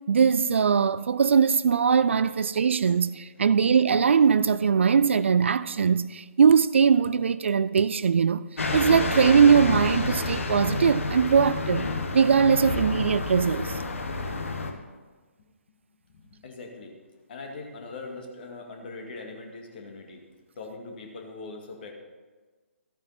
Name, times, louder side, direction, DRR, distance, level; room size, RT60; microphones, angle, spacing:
voice 1, 0.1-8.4 8.7-11.9 12.1-13.8, right 6 dB, 55° right, 0.4 m, -21 dB
sound 1, 8.6-14.7, left 3 dB, 65° left, 1.3 m, -29 dB
voice 2, 16.1-16.9 17.3-20.2 20.6-21.9, left 3 dB, 40° left, 2.1 m, -41 dB
13.5 x 8.8 x 4.3 m
figure-of-eight pair, 130°, 8 cm